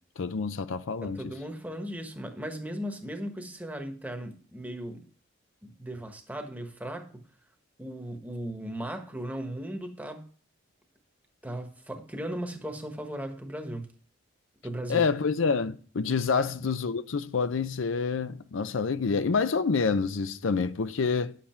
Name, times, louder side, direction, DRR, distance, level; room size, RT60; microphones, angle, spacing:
voice 1, 0.2-1.3 14.9-21.4, left 5 dB, 75° left, 0.5 m, -27 dB
voice 2, 1.0-5.0 5.6-7.2 7.8-10.3 11.4-13.9 14.6-15.1 16.3-16.5, right 1 dB, 10° right, 1.2 m, -37 dB
10.0 x 7.5 x 4.4 m
head